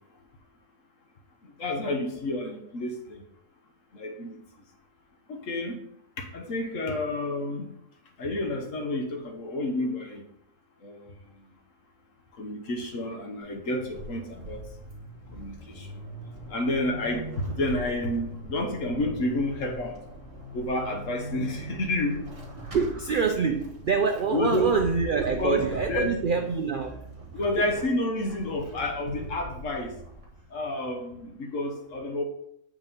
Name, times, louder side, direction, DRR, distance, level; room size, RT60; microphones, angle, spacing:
voice 1, 1.4-3.2 3.9-4.4 5.3-5.8 6.2-7.7 8.2-10.2 10.8-11.1 12.4-14.7 15.3-16.0 16.5-20.0 20.5-22.2 24.3-24.8 25.4-26.2 27.3-29.9 30.5-32.2, left 1 dB, 75° left, 3 dB, 1.5 m, -30 dB
Vehicle / Accelerating revving vroom / Squeak, 13.4-30.6, right 1 dB, 25° right, 1.4 m, -41 dB
voice 2, 22.7-27.0, right 5 dB, 65° right, 5 dB, 0.5 m, -26 dB
7.4 x 4.9 x 3.7 m, 0.75 s
omnidirectional pair, 1.3 m